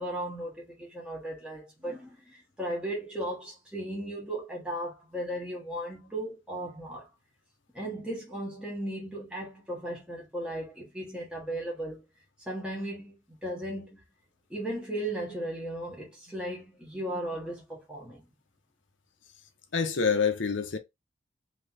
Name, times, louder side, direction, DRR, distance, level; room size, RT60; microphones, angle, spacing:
voice 1, 0.0-7.1 7.7-12.0 12.5-14.0 14.5-18.2, right 1 dB, 5° right, 1.4 m, -36 dB
voice 2, 19.7-20.8, left 5 dB, 80° left, 0.8 m, -26 dB
3.3 x 3.0 x 4.0 m
head